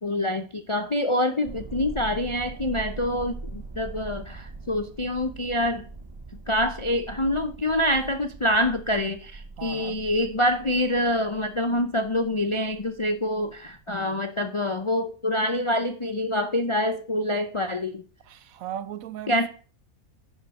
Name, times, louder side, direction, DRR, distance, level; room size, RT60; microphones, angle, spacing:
voice 1, 0.0-5.9 6.5-18.0 19.3-19.5, left 1 dB, 45° left, 0.4 m, -26 dB
sound 1, 1.4-13.9, right 3 dB, 30° right, 0.4 m, -42 dB
voice 2, 9.6-10.0 13.9-14.3 18.2-19.5, right 10 dB, 70° right, 1.1 m, -38 dB
10.5 x 5.5 x 6.5 m
omnidirectional pair, 1.5 m